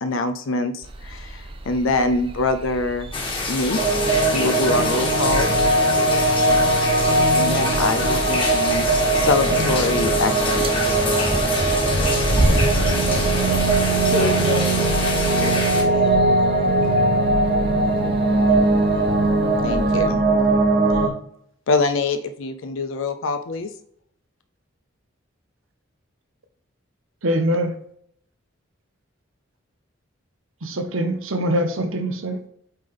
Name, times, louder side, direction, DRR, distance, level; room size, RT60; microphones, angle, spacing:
voice 1, 0.0-3.1 3.5-4.1 4.3-5.5 7.3-10.7 19.6-20.2 20.9-21.0 21.7-23.7, left 3 dB, 75° left, 0.5 m, -24 dB
sound 1, 0.8-20.1, right 1 dB, 25° right, 0.6 m, -31 dB
sound 2, 3.1-15.8, left 3 dB, 25° left, 1.6 m, -27 dB
sound 3, 3.7-21.1, right 2 dB, 50° right, 1.1 m, -20 dB
voice 2, 14.1-16.1, left 2 dB, 40° left, 2.4 m, -29 dB
voice 3, 27.2-27.8 30.6-32.3, equal, 80° right, 0.9 m, -23 dB
8.8 x 3.4 x 3.7 m
head